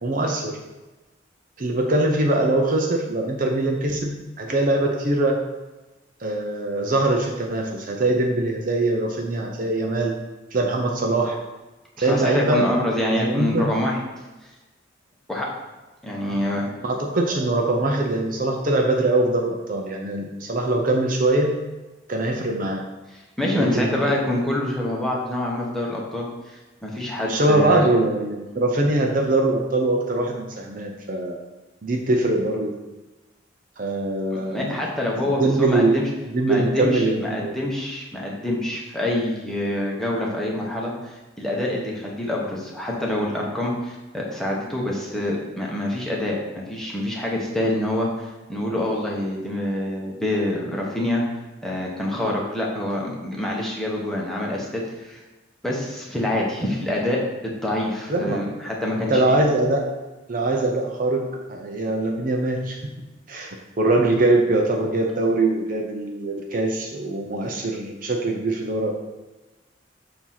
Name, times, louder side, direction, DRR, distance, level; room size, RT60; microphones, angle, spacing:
voice 1, 0.0-0.6 1.6-5.4 6.2-10.1 10.5-11.4 12.0-12.7 13.1-13.7 16.3-16.5 16.8-21.6 22.1-22.8 23.5-24.2 27.2-31.4 31.8-32.7 33.8-34.8 35.1-36.0 36.3-37.5 58.1-58.5 59.1-59.9 60.3-62.8 63.3-69.0, right 2 dB, 45° right, 1 dB, 0.6 m, -22 dB
voice 2, 12.0-14.0 15.3-15.5 16.0-16.7 23.1-27.8 34.3-36.1 36.5-51.2 51.6-55.2 55.6-59.4, left 1 dB, ahead, -3 dB, 1.1 m, -26 dB
7.0 x 2.8 x 5.7 m, 1.1 s
head